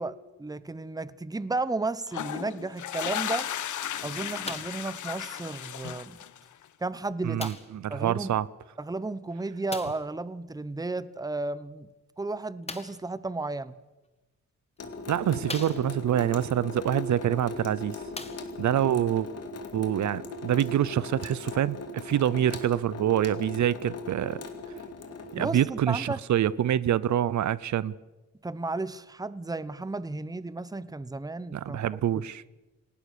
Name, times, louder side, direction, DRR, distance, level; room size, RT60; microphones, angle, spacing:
voice 1, 0.0-3.5 4.0-6.2 6.8-7.5 7.9-8.3 8.8-11.9 12.2-13.8 25.4-26.2 28.4-31.8, right 2 dB, 10° right, 0.9 m, -33 dB
sound 1, 2.1-6.6, left 10 dB, 80° left, 1.1 m, -35 dB
sound 2, 4.4-4.9 5.8-5.9 7.4-7.8 9.7-10.1 12.6-13.1 14.0-14.1 14.8-14.9 15.4-16.2 17.4-17.5 18.0-18.8 19.6-19.7, left 3 dB, 20° left, 1.9 m, -40 dB
voice 2, 7.2-8.5 15.1-18.0 18.6-19.3 19.7-24.4 25.3-27.9 31.5-32.4, right 11 dB, 70° right, 0.7 m, -26 dB
Water tap faucet / Sink (filling or washing) / Drip, 14.8-25.6, left 2 dB, 55° left, 2.8 m, -39 dB
28.0 x 18.5 x 6.7 m
wide cardioid pair, 115°, 29 cm